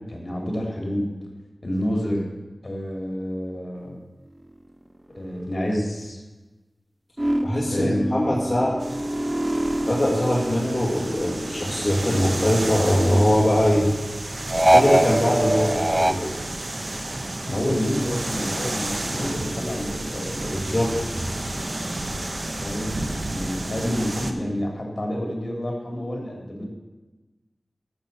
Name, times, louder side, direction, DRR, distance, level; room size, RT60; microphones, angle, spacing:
voice 1, 0.1-1.1 1.6-2.2 2.6-4.0 5.1-6.2 7.7-8.0 17.4-20.5 22.6-22.9 23.3-26.6, equal, 45° left, 0 dB, 3.1 m, -28 dB
sound 1, 7.2-11.1 11.4-13.0 14.5-16.1, right 1 dB, 25° right, 0.4 m, -24 dB
voice 2, 7.4-8.8 9.9-13.9 14.7-16.3 20.5-21.4, equal, 25° left, -6 dB, 2.2 m, -22 dB
sound 2, 8.8-24.3, right 1 dB, 50° right, 1.1 m, -31 dB
13.0 x 6.4 x 6.9 m, 1.2 s
wide cardioid pair, 50°, 0 cm